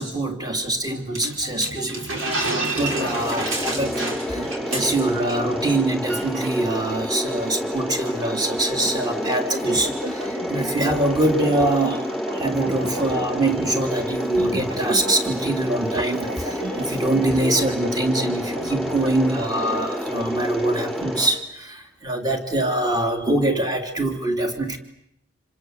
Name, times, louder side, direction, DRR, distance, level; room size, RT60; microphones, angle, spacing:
voice 1, 0.0-24.8, right 1 dB, 20° right, 5 dB, 3.0 m, -24 dB
sound 1, 0.7-6.4 6.7-6.8 7.8-20.1, right 1 dB, 55° right, 2.1 m, -37 dB
sound 2, 1.1-5.4 5.6-5.8 6.1-6.5, right 2 dB, 90° right, 5.4 m, -29 dB
Mechanisms, 2.8-21.3, equal, ahead, 7.8 m, -29 dB
28.0 x 26.5 x 8.0 m, 0.78 s
head